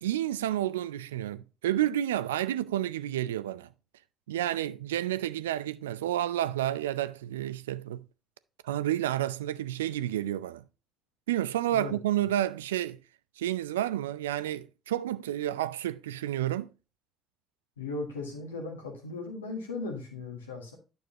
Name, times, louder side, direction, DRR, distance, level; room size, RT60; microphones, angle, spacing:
voice 1, 0.0-3.7 4.3-8.0 8.6-10.6 11.3-13.0 13.4-16.7, right 12 dB, 85° right, 0.3 m, -30 dB
voice 2, 17.8-20.7, left 3 dB, 90° left, 1.5 m, -37 dB
9.5 x 6.3 x 2.9 m
hypercardioid pair, 45°, 0 cm